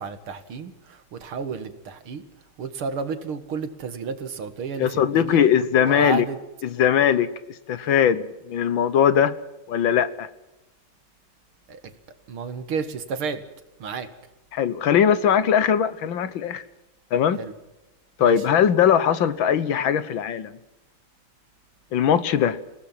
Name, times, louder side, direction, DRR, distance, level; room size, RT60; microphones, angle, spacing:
voice 1, 0.0-2.2 2.6-5.5 5.8-6.4 11.7-11.9 12.3-13.4 13.8-14.1 17.4-17.5 18.2-18.4, right 5 dB, 85° right, 9 dB, 2.7 m, -32 dB
voice 2, 4.8-6.2 6.6-9.3 9.7-10.3 14.5-16.6 17.1-17.4 18.2-20.6 21.9-22.6, left 8 dB, 70° left, 14 dB, 1.8 m, -20 dB
28.0 x 18.0 x 6.0 m, 0.98 s
omnidirectional pair, 2.3 m